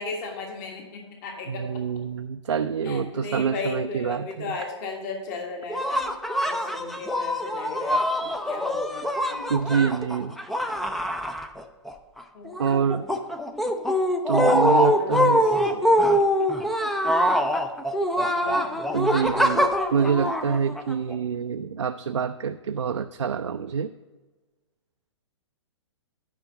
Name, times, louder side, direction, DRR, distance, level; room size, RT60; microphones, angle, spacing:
voice 1, 0.0-1.6 2.8-6.1 6.4-9.9 12.3-12.9 14.7-16.0 18.3-19.6, left 3 dB, 40° left, 2 dB, 1.5 m, -36 dB
voice 2, 1.5-4.5 9.5-10.4 12.6-13.0 14.3-15.4 18.9-23.9, right 6 dB, 75° right, 8 dB, 0.4 m, -26 dB
sound 1, 5.7-11.9 12.2-21.2, equal, ahead, 0.3 m, -24 dB
9.5 x 5.1 x 5.6 m, 1.2 s
figure-of-eight pair, 115°, 15 cm